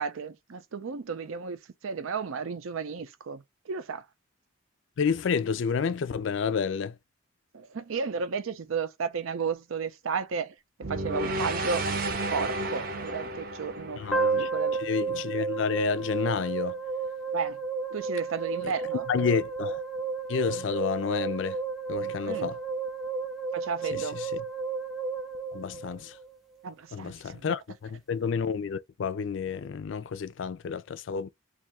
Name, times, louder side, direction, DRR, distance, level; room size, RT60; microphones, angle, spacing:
voice 1, 0.0-1.6 1.8-4.0 7.5-10.5 10.9-11.8 12.3-14.0 14.4-14.8 17.3-17.6 17.9-19.0 22.2-22.5 23.5-24.2 26.6-27.5, right 5 dB, 85° right, 0.5 m, -33 dB
voice 2, 5.0-6.9 14.0-14.5 14.8-16.8 18.6-18.7 19.1-19.8 20.3-21.6 21.9-22.6 23.9-24.4 25.5-26.1 26.9-31.3, left 6 dB, 70° left, 0.4 m, -30 dB
sound 1, 10.8-15.1, right 2 dB, 45° right, 0.6 m, -32 dB
sound 2, 14.1-26.3, right 4 dB, ahead, 0.3 m, -32 dB
2.6 x 2.4 x 4.2 m
head